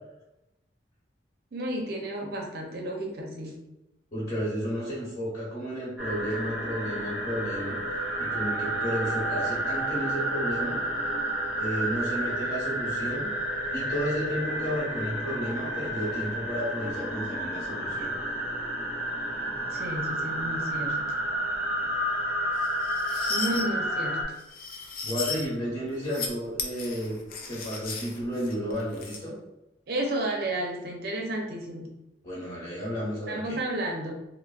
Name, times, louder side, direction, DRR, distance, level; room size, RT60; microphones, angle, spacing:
voice 1, 1.5-3.6 19.7-21.1 23.3-24.3 29.9-32.0 33.3-34.1, right 1 dB, 55° right, 1 dB, 0.5 m, -32 dB
voice 2, 4.1-7.8 8.2-10.8 11.6-13.3 13.7-18.1 23.5-23.8 25.0-27.2 27.5-29.3 32.2-33.6, equal, 35° left, -9 dB, 1.1 m, -32 dB
sound 1, 6.0-24.2, right 1 dB, 10° right, 0.5 m, -30 dB
sound 2, 22.6-23.6 24.4-25.5 25.9-26.3 26.6-29.2, left 4 dB, 50° left, 0.4 m, -36 dB
3.4 x 2.0 x 2.3 m, 0.92 s
head